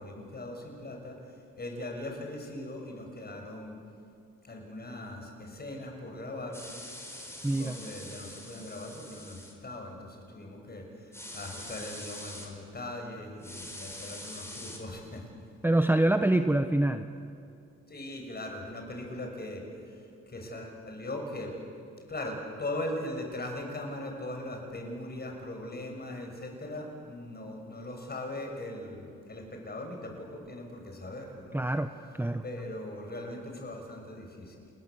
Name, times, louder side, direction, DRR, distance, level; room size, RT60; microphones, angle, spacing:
voice 1, 0.0-3.7 4.4-6.6 7.5-15.2 17.9-21.5 22.1-31.6 32.4-34.6, left 1 dB, 30° left, 2 dB, 6.6 m, -40 dB
sound 1, 6.5-9.5 11.1-12.5 13.4-14.8, left 1 dB, 10° left, 5.0 m, -44 dB
voice 2, 7.4-7.8 15.6-17.1 31.5-31.9 32.2-32.4, right 1 dB, 5° right, 8 dB, 0.9 m, -25 dB
29.0 x 21.0 x 7.8 m, 2.5 s
cardioid pair, 90°, 30 cm